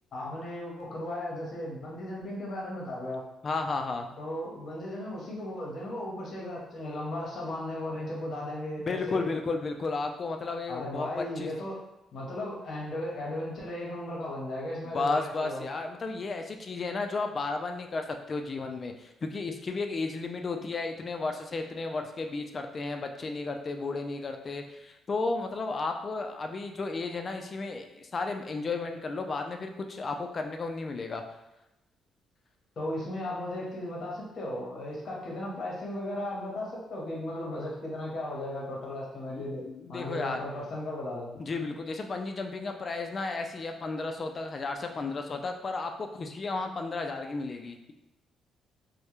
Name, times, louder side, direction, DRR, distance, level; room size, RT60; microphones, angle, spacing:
voice 1, 0.1-3.2 4.2-9.3 10.7-11.8 12.1-15.7 32.8-41.3, left 1 dB, 55° left, -3 dB, 0.8 m, -36 dB
voice 2, 3.4-4.1 8.9-11.5 14.8-31.2 39.3-40.4 41.4-47.9, left 3 dB, 40° left, 5 dB, 0.3 m, -33 dB
2.2 x 2.0 x 2.9 m, 0.92 s
cardioid pair, 90°, 0 cm